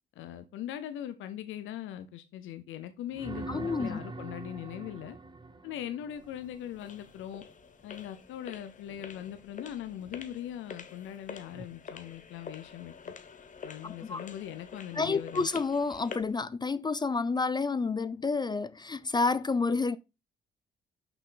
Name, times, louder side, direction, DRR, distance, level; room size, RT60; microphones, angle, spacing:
voice 1, 0.2-5.2 5.6-7.4 7.8-13.1 13.6-15.5, left 11 dB, 85° left, 0.7 m, -40 dB
sound 1, 3.1-7.0 11.5-11.7, right 2 dB, 25° right, 0.8 m, -43 dB
voice 2, 3.5-4.0 13.8-14.2 15.0-20.0, left 4 dB, 20° left, 0.4 m, -29 dB
sound 2, 6.1-16.4, left 5 dB, 40° left, 0.9 m, -48 dB
6.0 x 5.5 x 3.8 m
cardioid pair, 90°, 20 cm